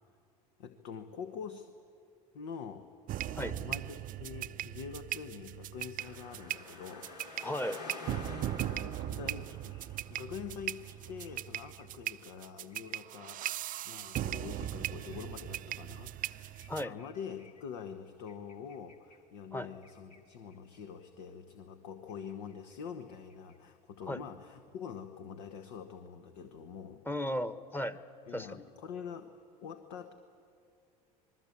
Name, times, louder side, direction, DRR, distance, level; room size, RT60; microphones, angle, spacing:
voice 1, 0.6-1.7 2.3-2.9 3.2-7.1 8.6-9.7 10.1-27.0 28.3-29.3 29.6-30.1, left 7 dB, 70° left, 7 dB, 1.3 m, -45 dB
sound 1, 3.1-16.9, right 13 dB, 40° right, 0.6 m, -39 dB
sound 2, 6.0-13.9 14.1-16.0 16.3-19.2 19.4-19.5 19.8-20.8 21.0-21.6 21.9-23.6, left 3 dB, 90° left, 2.4 m, -51 dB
voice 2, 7.4-7.8 16.7-16.9 19.5-19.7 24.1-24.2 27.1-28.0 28.3-28.6, left 1 dB, 10° left, 12 dB, 1.2 m, -35 dB
27.0 x 21.0 x 8.5 m, 2.5 s
hypercardioid pair, 75°, 20 cm